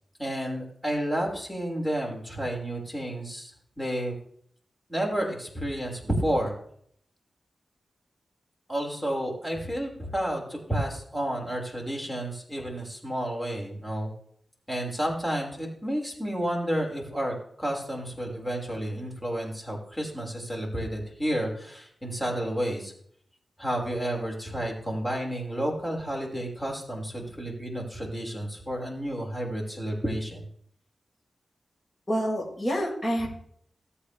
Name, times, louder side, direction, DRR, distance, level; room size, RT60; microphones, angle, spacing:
voice 1, 0.2-4.2 4.9-6.5 8.7-14.1 14.7-22.9 23.6-30.5, equal, 15° left, -1 dB, 5.5 m, -31 dB
voice 2, 32.1-33.3, equal, 30° left, -3 dB, 5.9 m, -27 dB
19.5 x 8.7 x 3.5 m, 0.64 s
cardioid pair, 50°, 0 cm